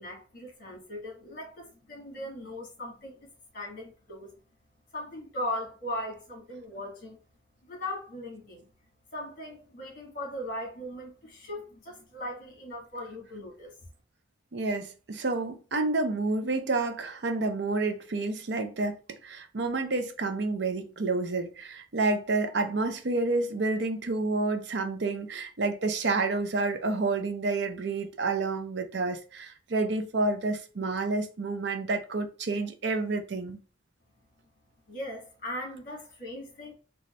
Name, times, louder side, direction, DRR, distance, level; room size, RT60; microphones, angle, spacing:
voice 1, 0.0-4.3 4.9-7.2 7.6-8.7 9.1-13.7 34.9-36.7, left 1 dB, 45° left, 1.8 m, -39 dB
voice 2, 14.5-33.6, right 3 dB, 60° right, 0.6 m, -29 dB
4.0 x 2.3 x 3.1 m
head